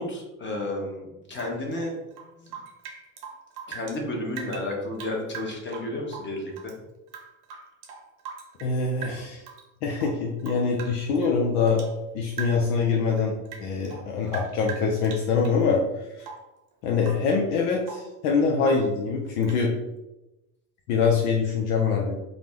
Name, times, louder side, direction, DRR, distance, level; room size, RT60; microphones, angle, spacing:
voice 1, 0.0-1.9 2.4-2.5 3.7-6.7, left 1 dB, 25° left, 0 dB, 0.8 m, -32 dB
Rain / Drip, 1.3-4.0 4.3-6.8 7.1-8.7 9.0-9.6 9.9-12.0 12.3-12.8 13.1-15.6 16.2-16.6 17.0-17.3 17.6-18.1 18.6-19.0 19.4-19.7, right 6 dB, 55° right, 0.9 m, -41 dB
voice 2, 8.6-9.4 9.8-11.8 12.1-13.3 13.6-15.8 16.1-16.3 16.8-19.7 20.9-22.2, left 5 dB, 80° left, -1 dB, 0.6 m, -24 dB
2.5 x 2.0 x 3.3 m, 0.97 s
hypercardioid pair, 85°, 45 cm